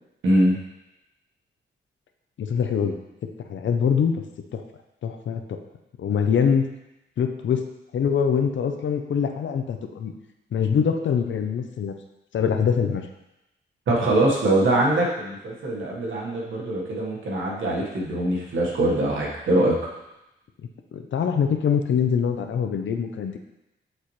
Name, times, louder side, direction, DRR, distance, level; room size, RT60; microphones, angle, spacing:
voice 1, 0.2-0.6 13.9-19.8, right 1 dB, 90° right, -3 dB, 1.6 m, -23 dB
voice 2, 2.4-3.0 3.2-4.1 4.5-4.6 5.0-5.6 6.0-6.7 7.2-7.6 7.9-10.1 10.5-11.9 12.3-13.1 20.9-23.4, left 7 dB, 75° left, 6 dB, 0.6 m, -23 dB
8.0 x 4.2 x 3.2 m, 0.92 s
wide cardioid pair, 120°, 20 cm